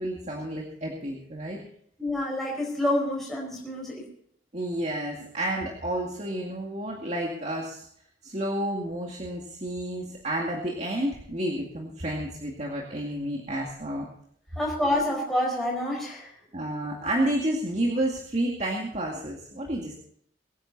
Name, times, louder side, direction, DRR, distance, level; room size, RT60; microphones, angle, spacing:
voice 1, 0.0-1.6 4.5-7.9 8.2-14.1 16.5-20.0, right 1 dB, 35° right, -1 dB, 2.3 m, -30 dB
voice 2, 2.0-4.1 14.6-16.3, left 1 dB, ahead, -3 dB, 4.7 m, -28 dB
23.0 x 10.0 x 4.1 m, 0.65 s
head